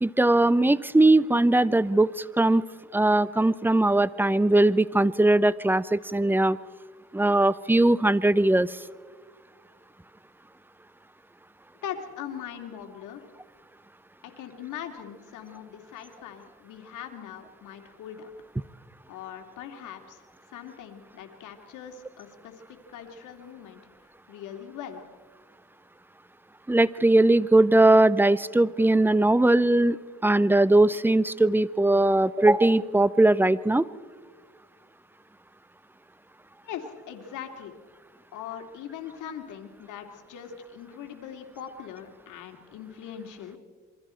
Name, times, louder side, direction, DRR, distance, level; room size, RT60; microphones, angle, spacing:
voice 1, 0.0-2.6 2.9-6.6 7.1-8.8 26.7-30.0 30.2-33.8, right 2 dB, 5° right, 18 dB, 0.6 m, -20 dB
voice 2, 11.8-13.3 14.2-18.3 19.1-20.2 20.5-23.8 24.3-25.0 36.6-37.7 38.3-43.6, left 9 dB, 85° left, 5 dB, 2.5 m, -41 dB
27.5 x 23.5 x 4.4 m, 1.5 s
cardioid pair, 90°, 30 cm